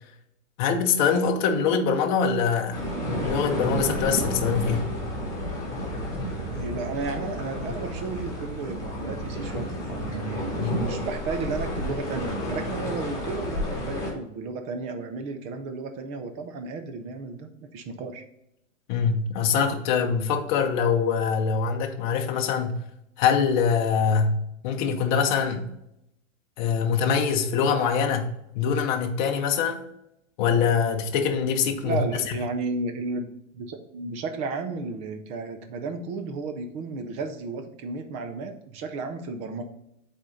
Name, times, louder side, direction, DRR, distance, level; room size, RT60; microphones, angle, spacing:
voice 1, 0.6-2.8 3.2-4.9 10.6-10.8 18.9-22.8 23.2-25.7 26.6-29.8 30.4-32.0, left 6 dB, 35° left, 0.8 m, -24 dB
sound 1, 2.7-14.1, equal, 10° left, 2.5 m, -31 dB
voice 2, 6.5-18.2 31.8-33.3 33.5-39.6, right 4 dB, 15° right, 0.5 m, -33 dB
7.9 x 4.3 x 3.7 m
hypercardioid pair, 145°, 39 cm